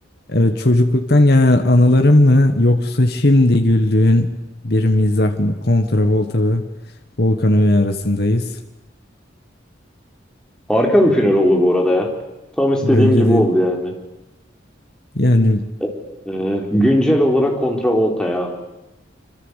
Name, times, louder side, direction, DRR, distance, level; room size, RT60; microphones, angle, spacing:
voice 1, 0.3-4.3 4.6-6.6 7.2-8.5 12.8-13.5 15.1-15.6, left 1 dB, 55° left, 5 dB, 1.6 m, -15 dB
voice 2, 10.7-12.1 12.6-13.9 15.8-15.9 16.3-18.5, equal, 5° left, 0 dB, 4.2 m, -17 dB
26.0 x 25.5 x 8.3 m, 0.97 s
head